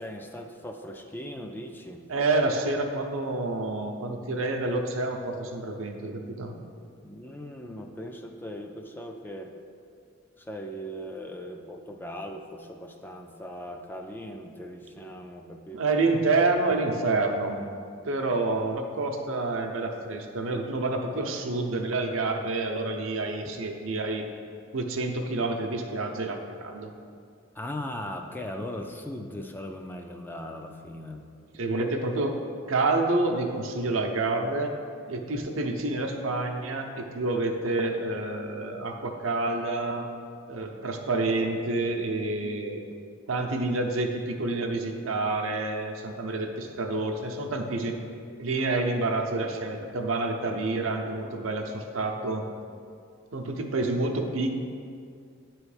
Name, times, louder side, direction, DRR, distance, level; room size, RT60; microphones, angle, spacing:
voice 1, 0.0-2.0 7.0-9.5 10.4-15.8 27.5-31.3, left 1 dB, 10° left, 3 dB, 0.3 m, -39 dB
voice 2, 2.1-6.5 15.7-17.6 18.0-24.3 24.7-26.9 31.6-32.4 32.7-34.7 35.1-40.1 40.5-42.8 43.3-48.0 48.4-52.5 53.3-54.5, right 2 dB, 75° right, 3 dB, 0.7 m, -28 dB
9.4 x 3.1 x 4.9 m, 2.3 s
head